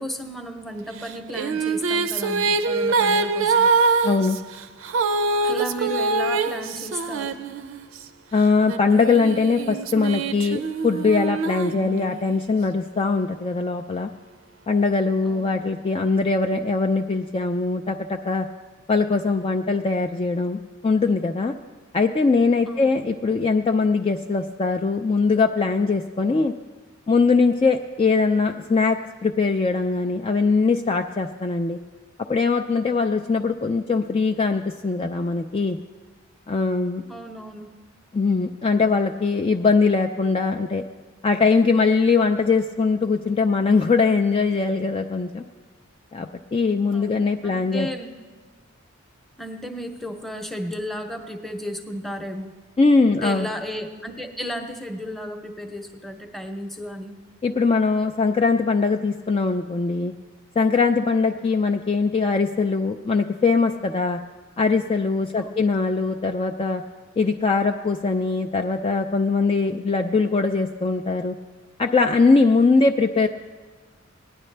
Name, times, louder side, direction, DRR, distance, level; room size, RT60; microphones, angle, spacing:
voice 1, 0.0-3.7 5.3-7.4 15.2-15.6 22.7-23.0 37.1-37.7 46.9-48.1 49.4-52.5 53.1-57.2 65.4-65.7, equal, ahead, 4 dB, 0.7 m, -34 dB
Female singing, 1.0-8.0 8.6-12.4, right 4 dB, 85° right, 0.6 m, -24 dB
voice 2, 4.0-4.4 8.3-14.1 14.7-18.5 18.9-21.5 21.9-26.5 27.1-31.8 32.3-35.8 36.5-37.0 38.1-40.8 41.2-45.4 46.1-47.9 52.8-53.5 57.4-60.1 60.6-64.2 64.6-66.8 67.2-71.4 71.8-73.3, left 4 dB, 25° left, 4 dB, 0.3 m, -21 dB
19.0 x 9.9 x 3.3 m, 1.4 s
head